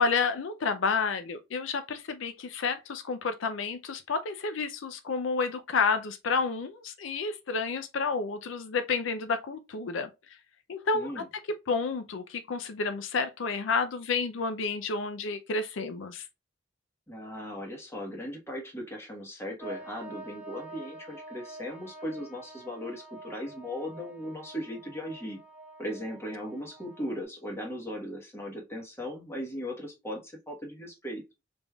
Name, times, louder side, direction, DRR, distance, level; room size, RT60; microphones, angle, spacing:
voice 1, 0.0-10.1 10.7-11.2 11.7-16.3, left 4 dB, 75° left, 0.5 m, -30 dB
voice 2, 10.9-11.3 17.1-25.4 25.8-31.2, equal, 15° left, 1.2 m, -38 dB
sound 1, 19.6-27.2, right 2 dB, 10° right, 1.2 m, -47 dB
5.1 x 3.4 x 2.3 m
head